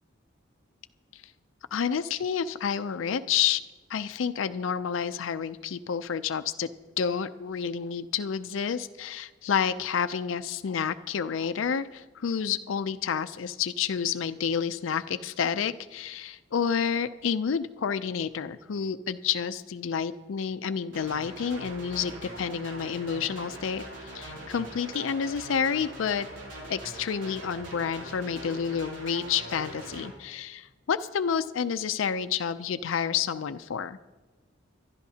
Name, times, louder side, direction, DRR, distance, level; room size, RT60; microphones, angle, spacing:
voice 1, 1.7-3.6 3.9-6.7 7.0-26.3 26.7-34.0, left 7 dB, 80° left, 12 dB, 0.4 m, -29 dB
sound 1, 20.9-30.1, right 1 dB, 80° right, 2.9 m, -42 dB
25.0 x 11.5 x 2.8 m, 1.2 s
head